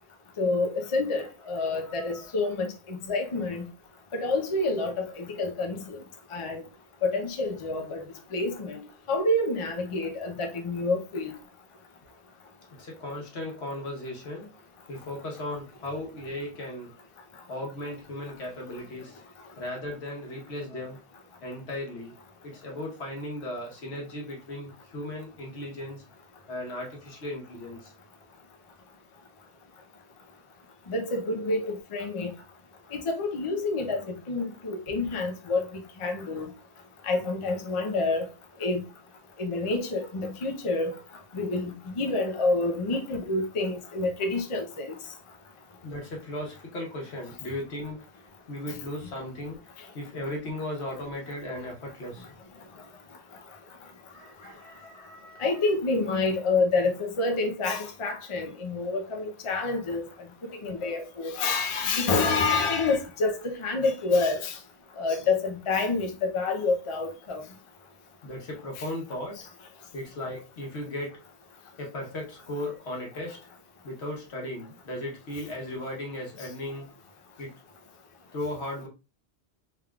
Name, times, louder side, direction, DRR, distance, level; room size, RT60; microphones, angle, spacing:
voice 1, 0.4-3.6 4.1-6.0 6.3-6.6 7.0-8.0 8.3-8.8 9.1-11.3 30.9-32.3 32.9-35.6 36.0-36.5 37.0-38.3 38.6-38.8 39.4-41.0 41.3-44.9 55.4-60.0 60.6-64.6 65.0-67.4 68.8-68.9, left 3 dB, 35° left, 0.6 m, -28 dB
voice 2, 1.6-2.3 10.0-10.1 12.8-14.5 14.9-16.9 17.5-19.2 19.6-21.0 21.4-22.2 22.4-26.0 26.5-27.9 45.8-48.0 48.5-49.6 49.9-52.3 52.8-52.9 54.1-55.6 60.7-61.1 68.2-69.5 69.9-71.2 71.8-73.4 73.8-76.9 77.4-77.5 78.3-78.9, left 1 dB, 75° left, 1.4 m, -37 dB
3.5 x 3.5 x 2.3 m
omnidirectional pair, 1.1 m